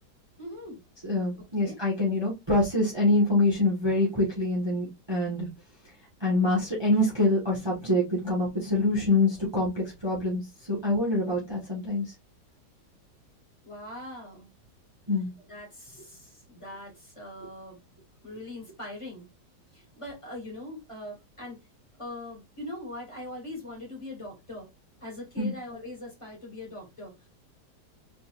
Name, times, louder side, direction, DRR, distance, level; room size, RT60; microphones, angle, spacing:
voice 1, 0.4-0.8 1.3-1.8 13.6-14.5 15.5-17.8 18.2-19.3 19.7-21.6 22.0-24.7 25.0-27.3, left 1 dB, 15° left, 2.5 m, -41 dB
voice 2, 1.0-5.5 6.2-10.4 10.7-12.1 15.1-15.3 25.4-25.5, left 2 dB, 15° right, 1.5 m, -25 dB
4.6 x 3.9 x 2.5 m
omnidirectional pair, 1.8 m